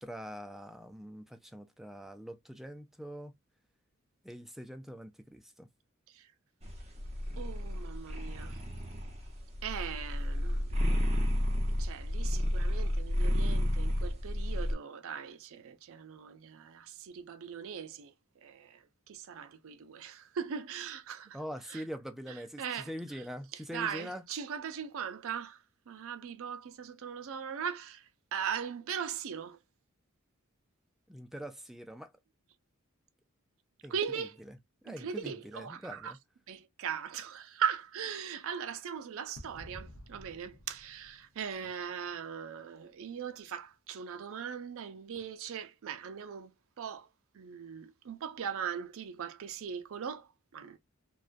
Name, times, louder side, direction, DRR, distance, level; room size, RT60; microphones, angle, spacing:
voice 1, 0.0-3.3 4.2-5.7 21.3-24.2 31.1-32.1 33.8-34.3 34.8-36.2, equal, ahead, 0.3 m, -43 dB
sound 1, 6.6-14.7, equal, 30° right, 0.7 m, -31 dB
voice 2, 7.4-8.6 9.6-10.8 11.8-18.1 18.4-21.4 21.7-21.8 22.6-22.9 23.5-29.6 33.9-34.4 34.9-36.1 36.5-47.1 47.3-50.8, right 7 dB, 65° right, 0.4 m, -39 dB
sound 2, 39.3-42.0, equal, 65° left, 0.7 m, -51 dB
2.4 x 2.2 x 2.4 m
head